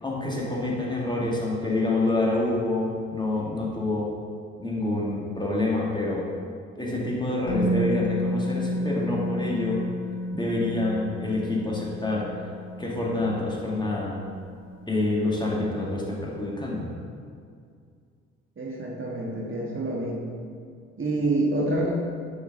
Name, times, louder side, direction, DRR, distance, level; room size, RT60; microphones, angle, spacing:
voice 1, 0.0-4.1 4.6-6.2 6.8-9.8 10.3-12.3 12.8-14.2 14.9-16.9, left 2 dB, 10° left, -4 dB, 1.8 m, -27 dB
Musical instrument, 7.5-15.4 15.6-15.8, equal, 85° left, 1.1 m, -31 dB
voice 2, 18.6-20.3 21.0-21.9, right 2 dB, 35° right, -3 dB, 1.4 m, -27 dB
7.4 x 5.0 x 4.0 m, 2.2 s
figure-of-eight pair, 45°, 36 cm